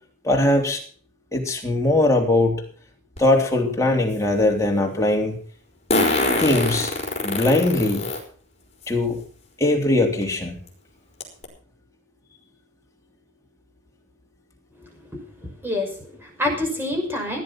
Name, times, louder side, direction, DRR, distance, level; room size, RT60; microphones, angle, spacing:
voice 1, 0.2-0.8 1.3-2.6 3.2-5.4 6.4-6.9 7.2-8.1 8.9-9.2 9.6-10.5 16.8-16.9, left 2 dB, 15° left, 1 dB, 3.4 m, -20 dB
Fart, 3.2-3.3 5.9-8.2 8.8-8.9 10.2-10.3 10.7-10.8 11.2-11.4, left 2 dB, 30° left, 4.6 m, -23 dB
voice 2, 15.1-17.4, left 1 dB, 10° right, 1 dB, 5.9 m, -27 dB
17.0 x 11.0 x 5.8 m, 0.43 s
head